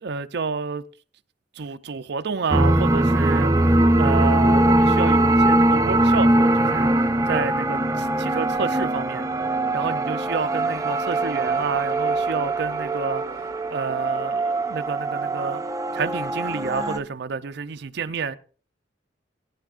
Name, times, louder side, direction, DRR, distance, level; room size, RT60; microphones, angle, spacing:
voice 1, 0.0-0.8 1.5-6.9 7.3-9.3 9.7-13.2 13.7-15.6 15.9-18.4, right 5 dB, 60° right, 0.5 m, -29 dB
sound 1, 2.5-17.0, right 1 dB, 15° right, 0.6 m, -21 dB
19.0 x 9.9 x 2.4 m
head